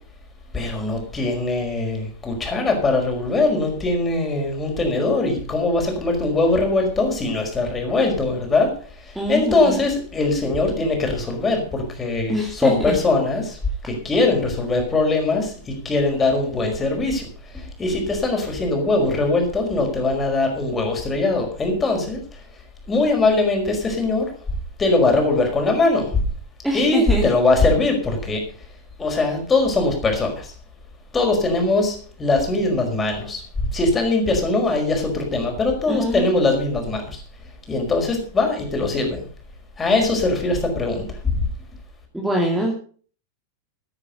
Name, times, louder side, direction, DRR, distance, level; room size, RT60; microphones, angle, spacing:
voice 1, 0.5-13.6 13.8-22.4 22.9-24.3 24.8-26.3 26.7-28.4 29.0-30.5 31.1-33.4 33.7-37.2 37.7-39.2 39.8-41.5, left 3 dB, 15° left, 3 dB, 5.0 m, -21 dB
voice 2, 9.1-9.9 12.3-13.0 26.6-27.3 35.9-36.3 42.1-42.8, equal, 5° right, -2 dB, 2.6 m, -24 dB
14.0 x 9.8 x 5.4 m, 0.43 s
figure-of-eight pair, 90°, 0 cm